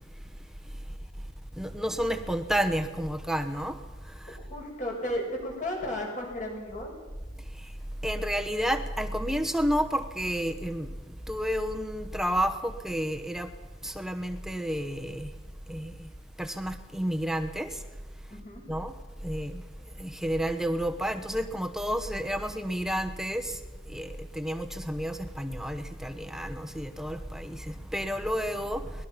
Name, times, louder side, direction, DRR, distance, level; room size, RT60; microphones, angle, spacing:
voice 1, 1.6-3.8 4.2-4.4 8.0-10.9 11.3-13.5 13.8-15.3 15.7-16.1 16.4-17.8 18.7-18.9 19.2-19.6 20.0-23.6 23.9-29.1, equal, 5° right, 1.1 m, -30 dB
voice 2, 4.4-6.9 18.3-18.6, left 1 dB, 40° left, 6.4 m, -34 dB
23.5 x 20.0 x 5.9 m
head